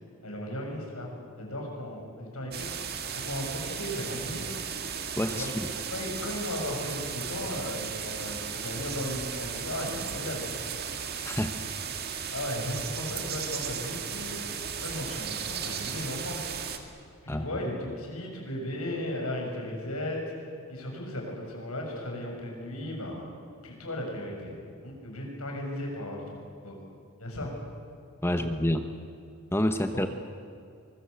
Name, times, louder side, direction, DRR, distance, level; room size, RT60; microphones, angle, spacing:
voice 1, 0.2-2.8 3.1-4.6 5.3-5.5 5.9-10.5 12.3-14.5 14.8-16.4 17.2-23.2 23.6-24.5 24.8-26.4 26.6-26.8 27.2-27.5 28.4-28.5 29.7-30.0, left 1 dB, 85° left, 0 dB, 7.4 m, -36 dB
sound 1, 2.5-16.8, right 7 dB, 45° right, 2.0 m, -35 dB
voice 2, 5.2-5.7 11.2-11.6 17.3-17.5 28.2-28.8 29.5-30.1, left 1 dB, 10° left, 7 dB, 1.0 m, -28 dB
24.0 x 22.5 x 8.3 m, 2.4 s
head